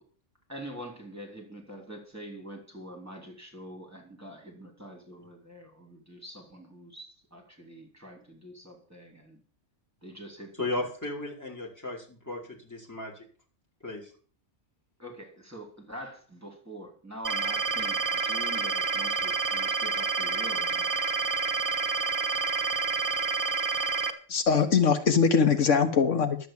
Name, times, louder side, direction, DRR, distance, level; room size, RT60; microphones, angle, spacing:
voice 1, 0.5-9.4 10.0-11.2 15.0-20.9, right 1 dB, 10° right, 1 dB, 3.1 m, -45 dB
voice 2, 10.6-13.1 13.8-14.1, left 2 dB, 15° left, 0 dB, 4.4 m, -35 dB
sound 1, 17.2-24.1, right 5 dB, 45° right, 1.4 m, -28 dB
voice 3, 24.3-26.4, left 6 dB, 80° left, 8 dB, 1.5 m, -22 dB
11.5 x 8.1 x 7.3 m, 0.44 s
omnidirectional pair, 1.3 m